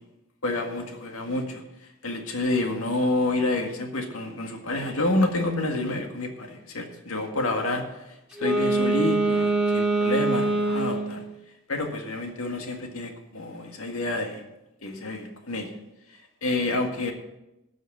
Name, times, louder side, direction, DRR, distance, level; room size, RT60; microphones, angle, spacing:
voice 1, 0.4-1.6 2.0-7.8 8.4-11.3 11.7-14.4 14.8-15.8 16.1-17.1, left 2 dB, 80° left, 3 dB, 1.9 m, -28 dB
Wind instrument woodwind instrument, 8.3-11.2, right 2 dB, 5° right, 2.0 m, -24 dB
12.5 x 6.4 x 7.6 m, 0.94 s
head